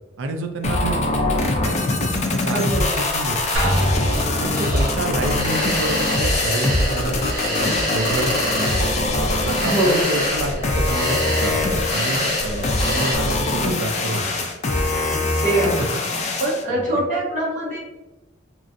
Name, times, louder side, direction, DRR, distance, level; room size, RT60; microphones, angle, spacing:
voice 1, 0.2-3.6 4.4-8.9 9.4-14.5 15.8-15.9 16.7-17.0, right 2 dB, 65° right, 4 dB, 0.4 m, -29 dB
sound 1, 0.6-16.6, left 2 dB, 35° left, 0.4 m, -23 dB
voice 2, 2.5-2.9 9.7-10.2 15.4-15.9 16.4-17.8, right 1 dB, 40° right, -7 dB, 1.3 m, -22 dB
sound 2, 2.8-13.2, equal, 25° right, 1.1 m, -27 dB
Drum, 3.6-4.8, equal, 85° right, 0.9 m, -23 dB
3.0 x 2.5 x 2.5 m, 1.1 s
head